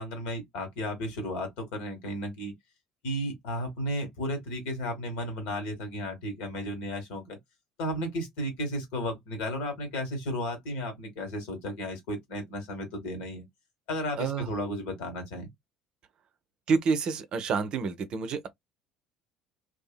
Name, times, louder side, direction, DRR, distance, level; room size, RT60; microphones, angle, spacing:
voice 1, 0.0-2.5 3.0-7.4 7.8-13.4 13.9-15.5, equal, 65° left, 1.4 m, -34 dB
voice 2, 14.2-14.5 16.7-18.5, right 5 dB, 45° right, 0.5 m, -28 dB
2.7 x 2.4 x 2.3 m
figure-of-eight pair, 60°, 2 cm